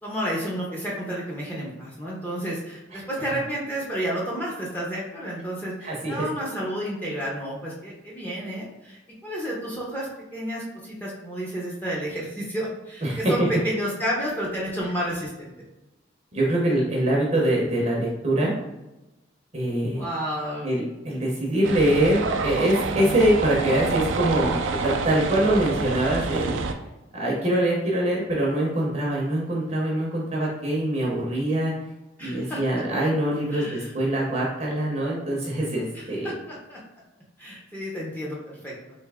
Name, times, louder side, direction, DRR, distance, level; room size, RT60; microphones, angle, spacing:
voice 1, 0.0-15.5 19.9-20.7 32.2-32.8 33.5-33.9 35.9-36.8 37.4-38.7, equal, 10° left, -5 dB, 0.6 m, -31 dB
voice 2, 5.8-6.3 13.0-13.5 16.3-18.5 19.5-20.1 20.6-26.6 27.1-31.7 32.2-36.4, right 1 dB, 35° right, -3 dB, 0.6 m, -24 dB
sound 1, 21.6-26.7, right 4 dB, 75° right, 0.4 m, -28 dB
3.3 x 2.7 x 3.5 m, 1.0 s
head